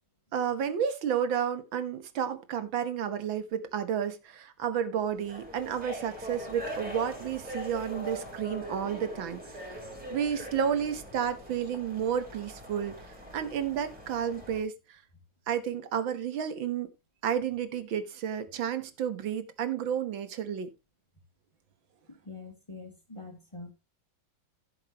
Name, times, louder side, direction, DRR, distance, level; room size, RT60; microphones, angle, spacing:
voice 1, 0.3-9.8 10.1-12.9 13.3-15.0 15.5-16.9 17.2-20.7, right 8 dB, 85° right, 2.0 m, -31 dB
sound 1, 5.0-14.6, right 1 dB, 5° right, 4.4 m, -42 dB
voice 2, 22.1-23.7, left 3 dB, 15° left, 2.0 m, -45 dB
15.5 x 7.3 x 3.0 m
omnidirectional pair, 2.1 m